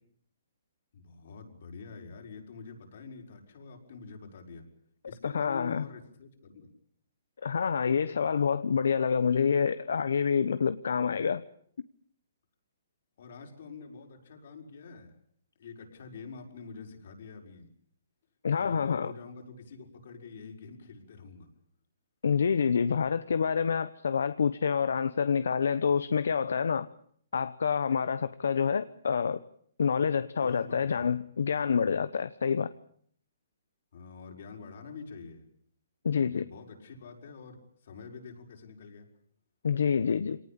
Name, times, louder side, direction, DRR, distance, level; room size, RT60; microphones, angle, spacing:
voice 1, 0.9-4.7 5.1-6.7 13.2-15.1 15.6-17.7 18.6-21.5 30.4-31.2 31.6-32.0 33.9-35.5 36.2-39.1, left 5 dB, 60° left, 6.0 m, -46 dB
voice 2, 5.2-5.8 7.4-11.4 18.4-19.1 22.2-26.9 27.3-29.4 29.8-32.7 36.0-36.4 39.6-40.4, left 6 dB, 80° left, 1.0 m, -27 dB
24.5 x 19.0 x 8.8 m
hypercardioid pair, 150°, 0 cm